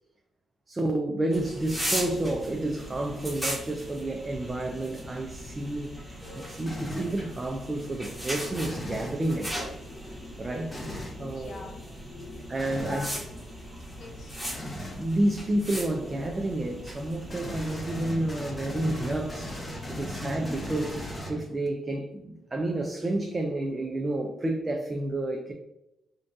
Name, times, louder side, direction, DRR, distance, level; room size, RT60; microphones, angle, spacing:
voice 1, 0.7-9.6 10.4-10.8 11.2-11.6 12.5-13.0 15.0-19.6 19.9-25.5, right 1 dB, 25° right, 0.4 m, -30 dB
sound 1, 1.3-21.2, equal, ahead, 1.1 m, -38 dB
sound 2, 6.7-7.2 8.6-9.2 10.7-11.2 12.6-13.1 14.5-15.0 17.3-21.7, left 1 dB, 25° left, 0.8 m, -38 dB
voice 2, 11.2-13.6 13.8-14.6, left 2 dB, 60° left, 0.6 m, -47 dB
3.8 x 2.3 x 2.5 m
cardioid pair, 100°, 0 cm